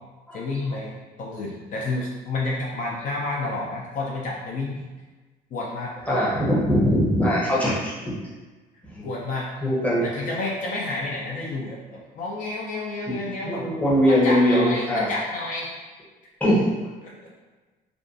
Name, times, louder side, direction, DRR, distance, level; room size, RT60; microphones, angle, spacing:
voice 1, 0.3-0.9 1.2-4.9 5.5-5.9 9.0-9.5 10.0-13.7 14.1-15.7, left 2 dB, 55° left, -3 dB, 0.4 m, -30 dB
voice 2, 6.1-8.1 8.9-9.0 9.6-10.0 13.1-13.2 13.4-15.1 16.4-16.7, equal, 10° left, -7 dB, 0.8 m, -21 dB
2.4 x 2.3 x 2.5 m, 1.3 s
cardioid pair, 110°, 17 cm